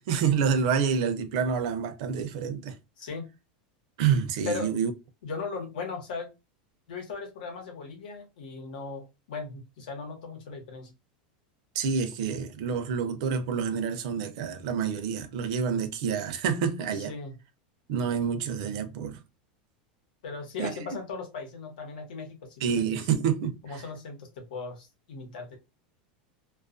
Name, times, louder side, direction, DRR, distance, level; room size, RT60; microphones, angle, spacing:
voice 1, 0.0-2.7 4.0-4.9 11.8-17.1 17.9-19.2 20.6-20.7 22.6-23.6, right 7 dB, 45° right, 0.4 m, -28 dB
voice 2, 3.0-3.3 4.4-4.7 5.2-6.3 6.9-10.9 17.1-17.3 20.2-23.1 23.6-25.6, left 4 dB, 90° left, 1.0 m, -38 dB
2.3 x 2.2 x 2.4 m
supercardioid pair, 180°, 5 cm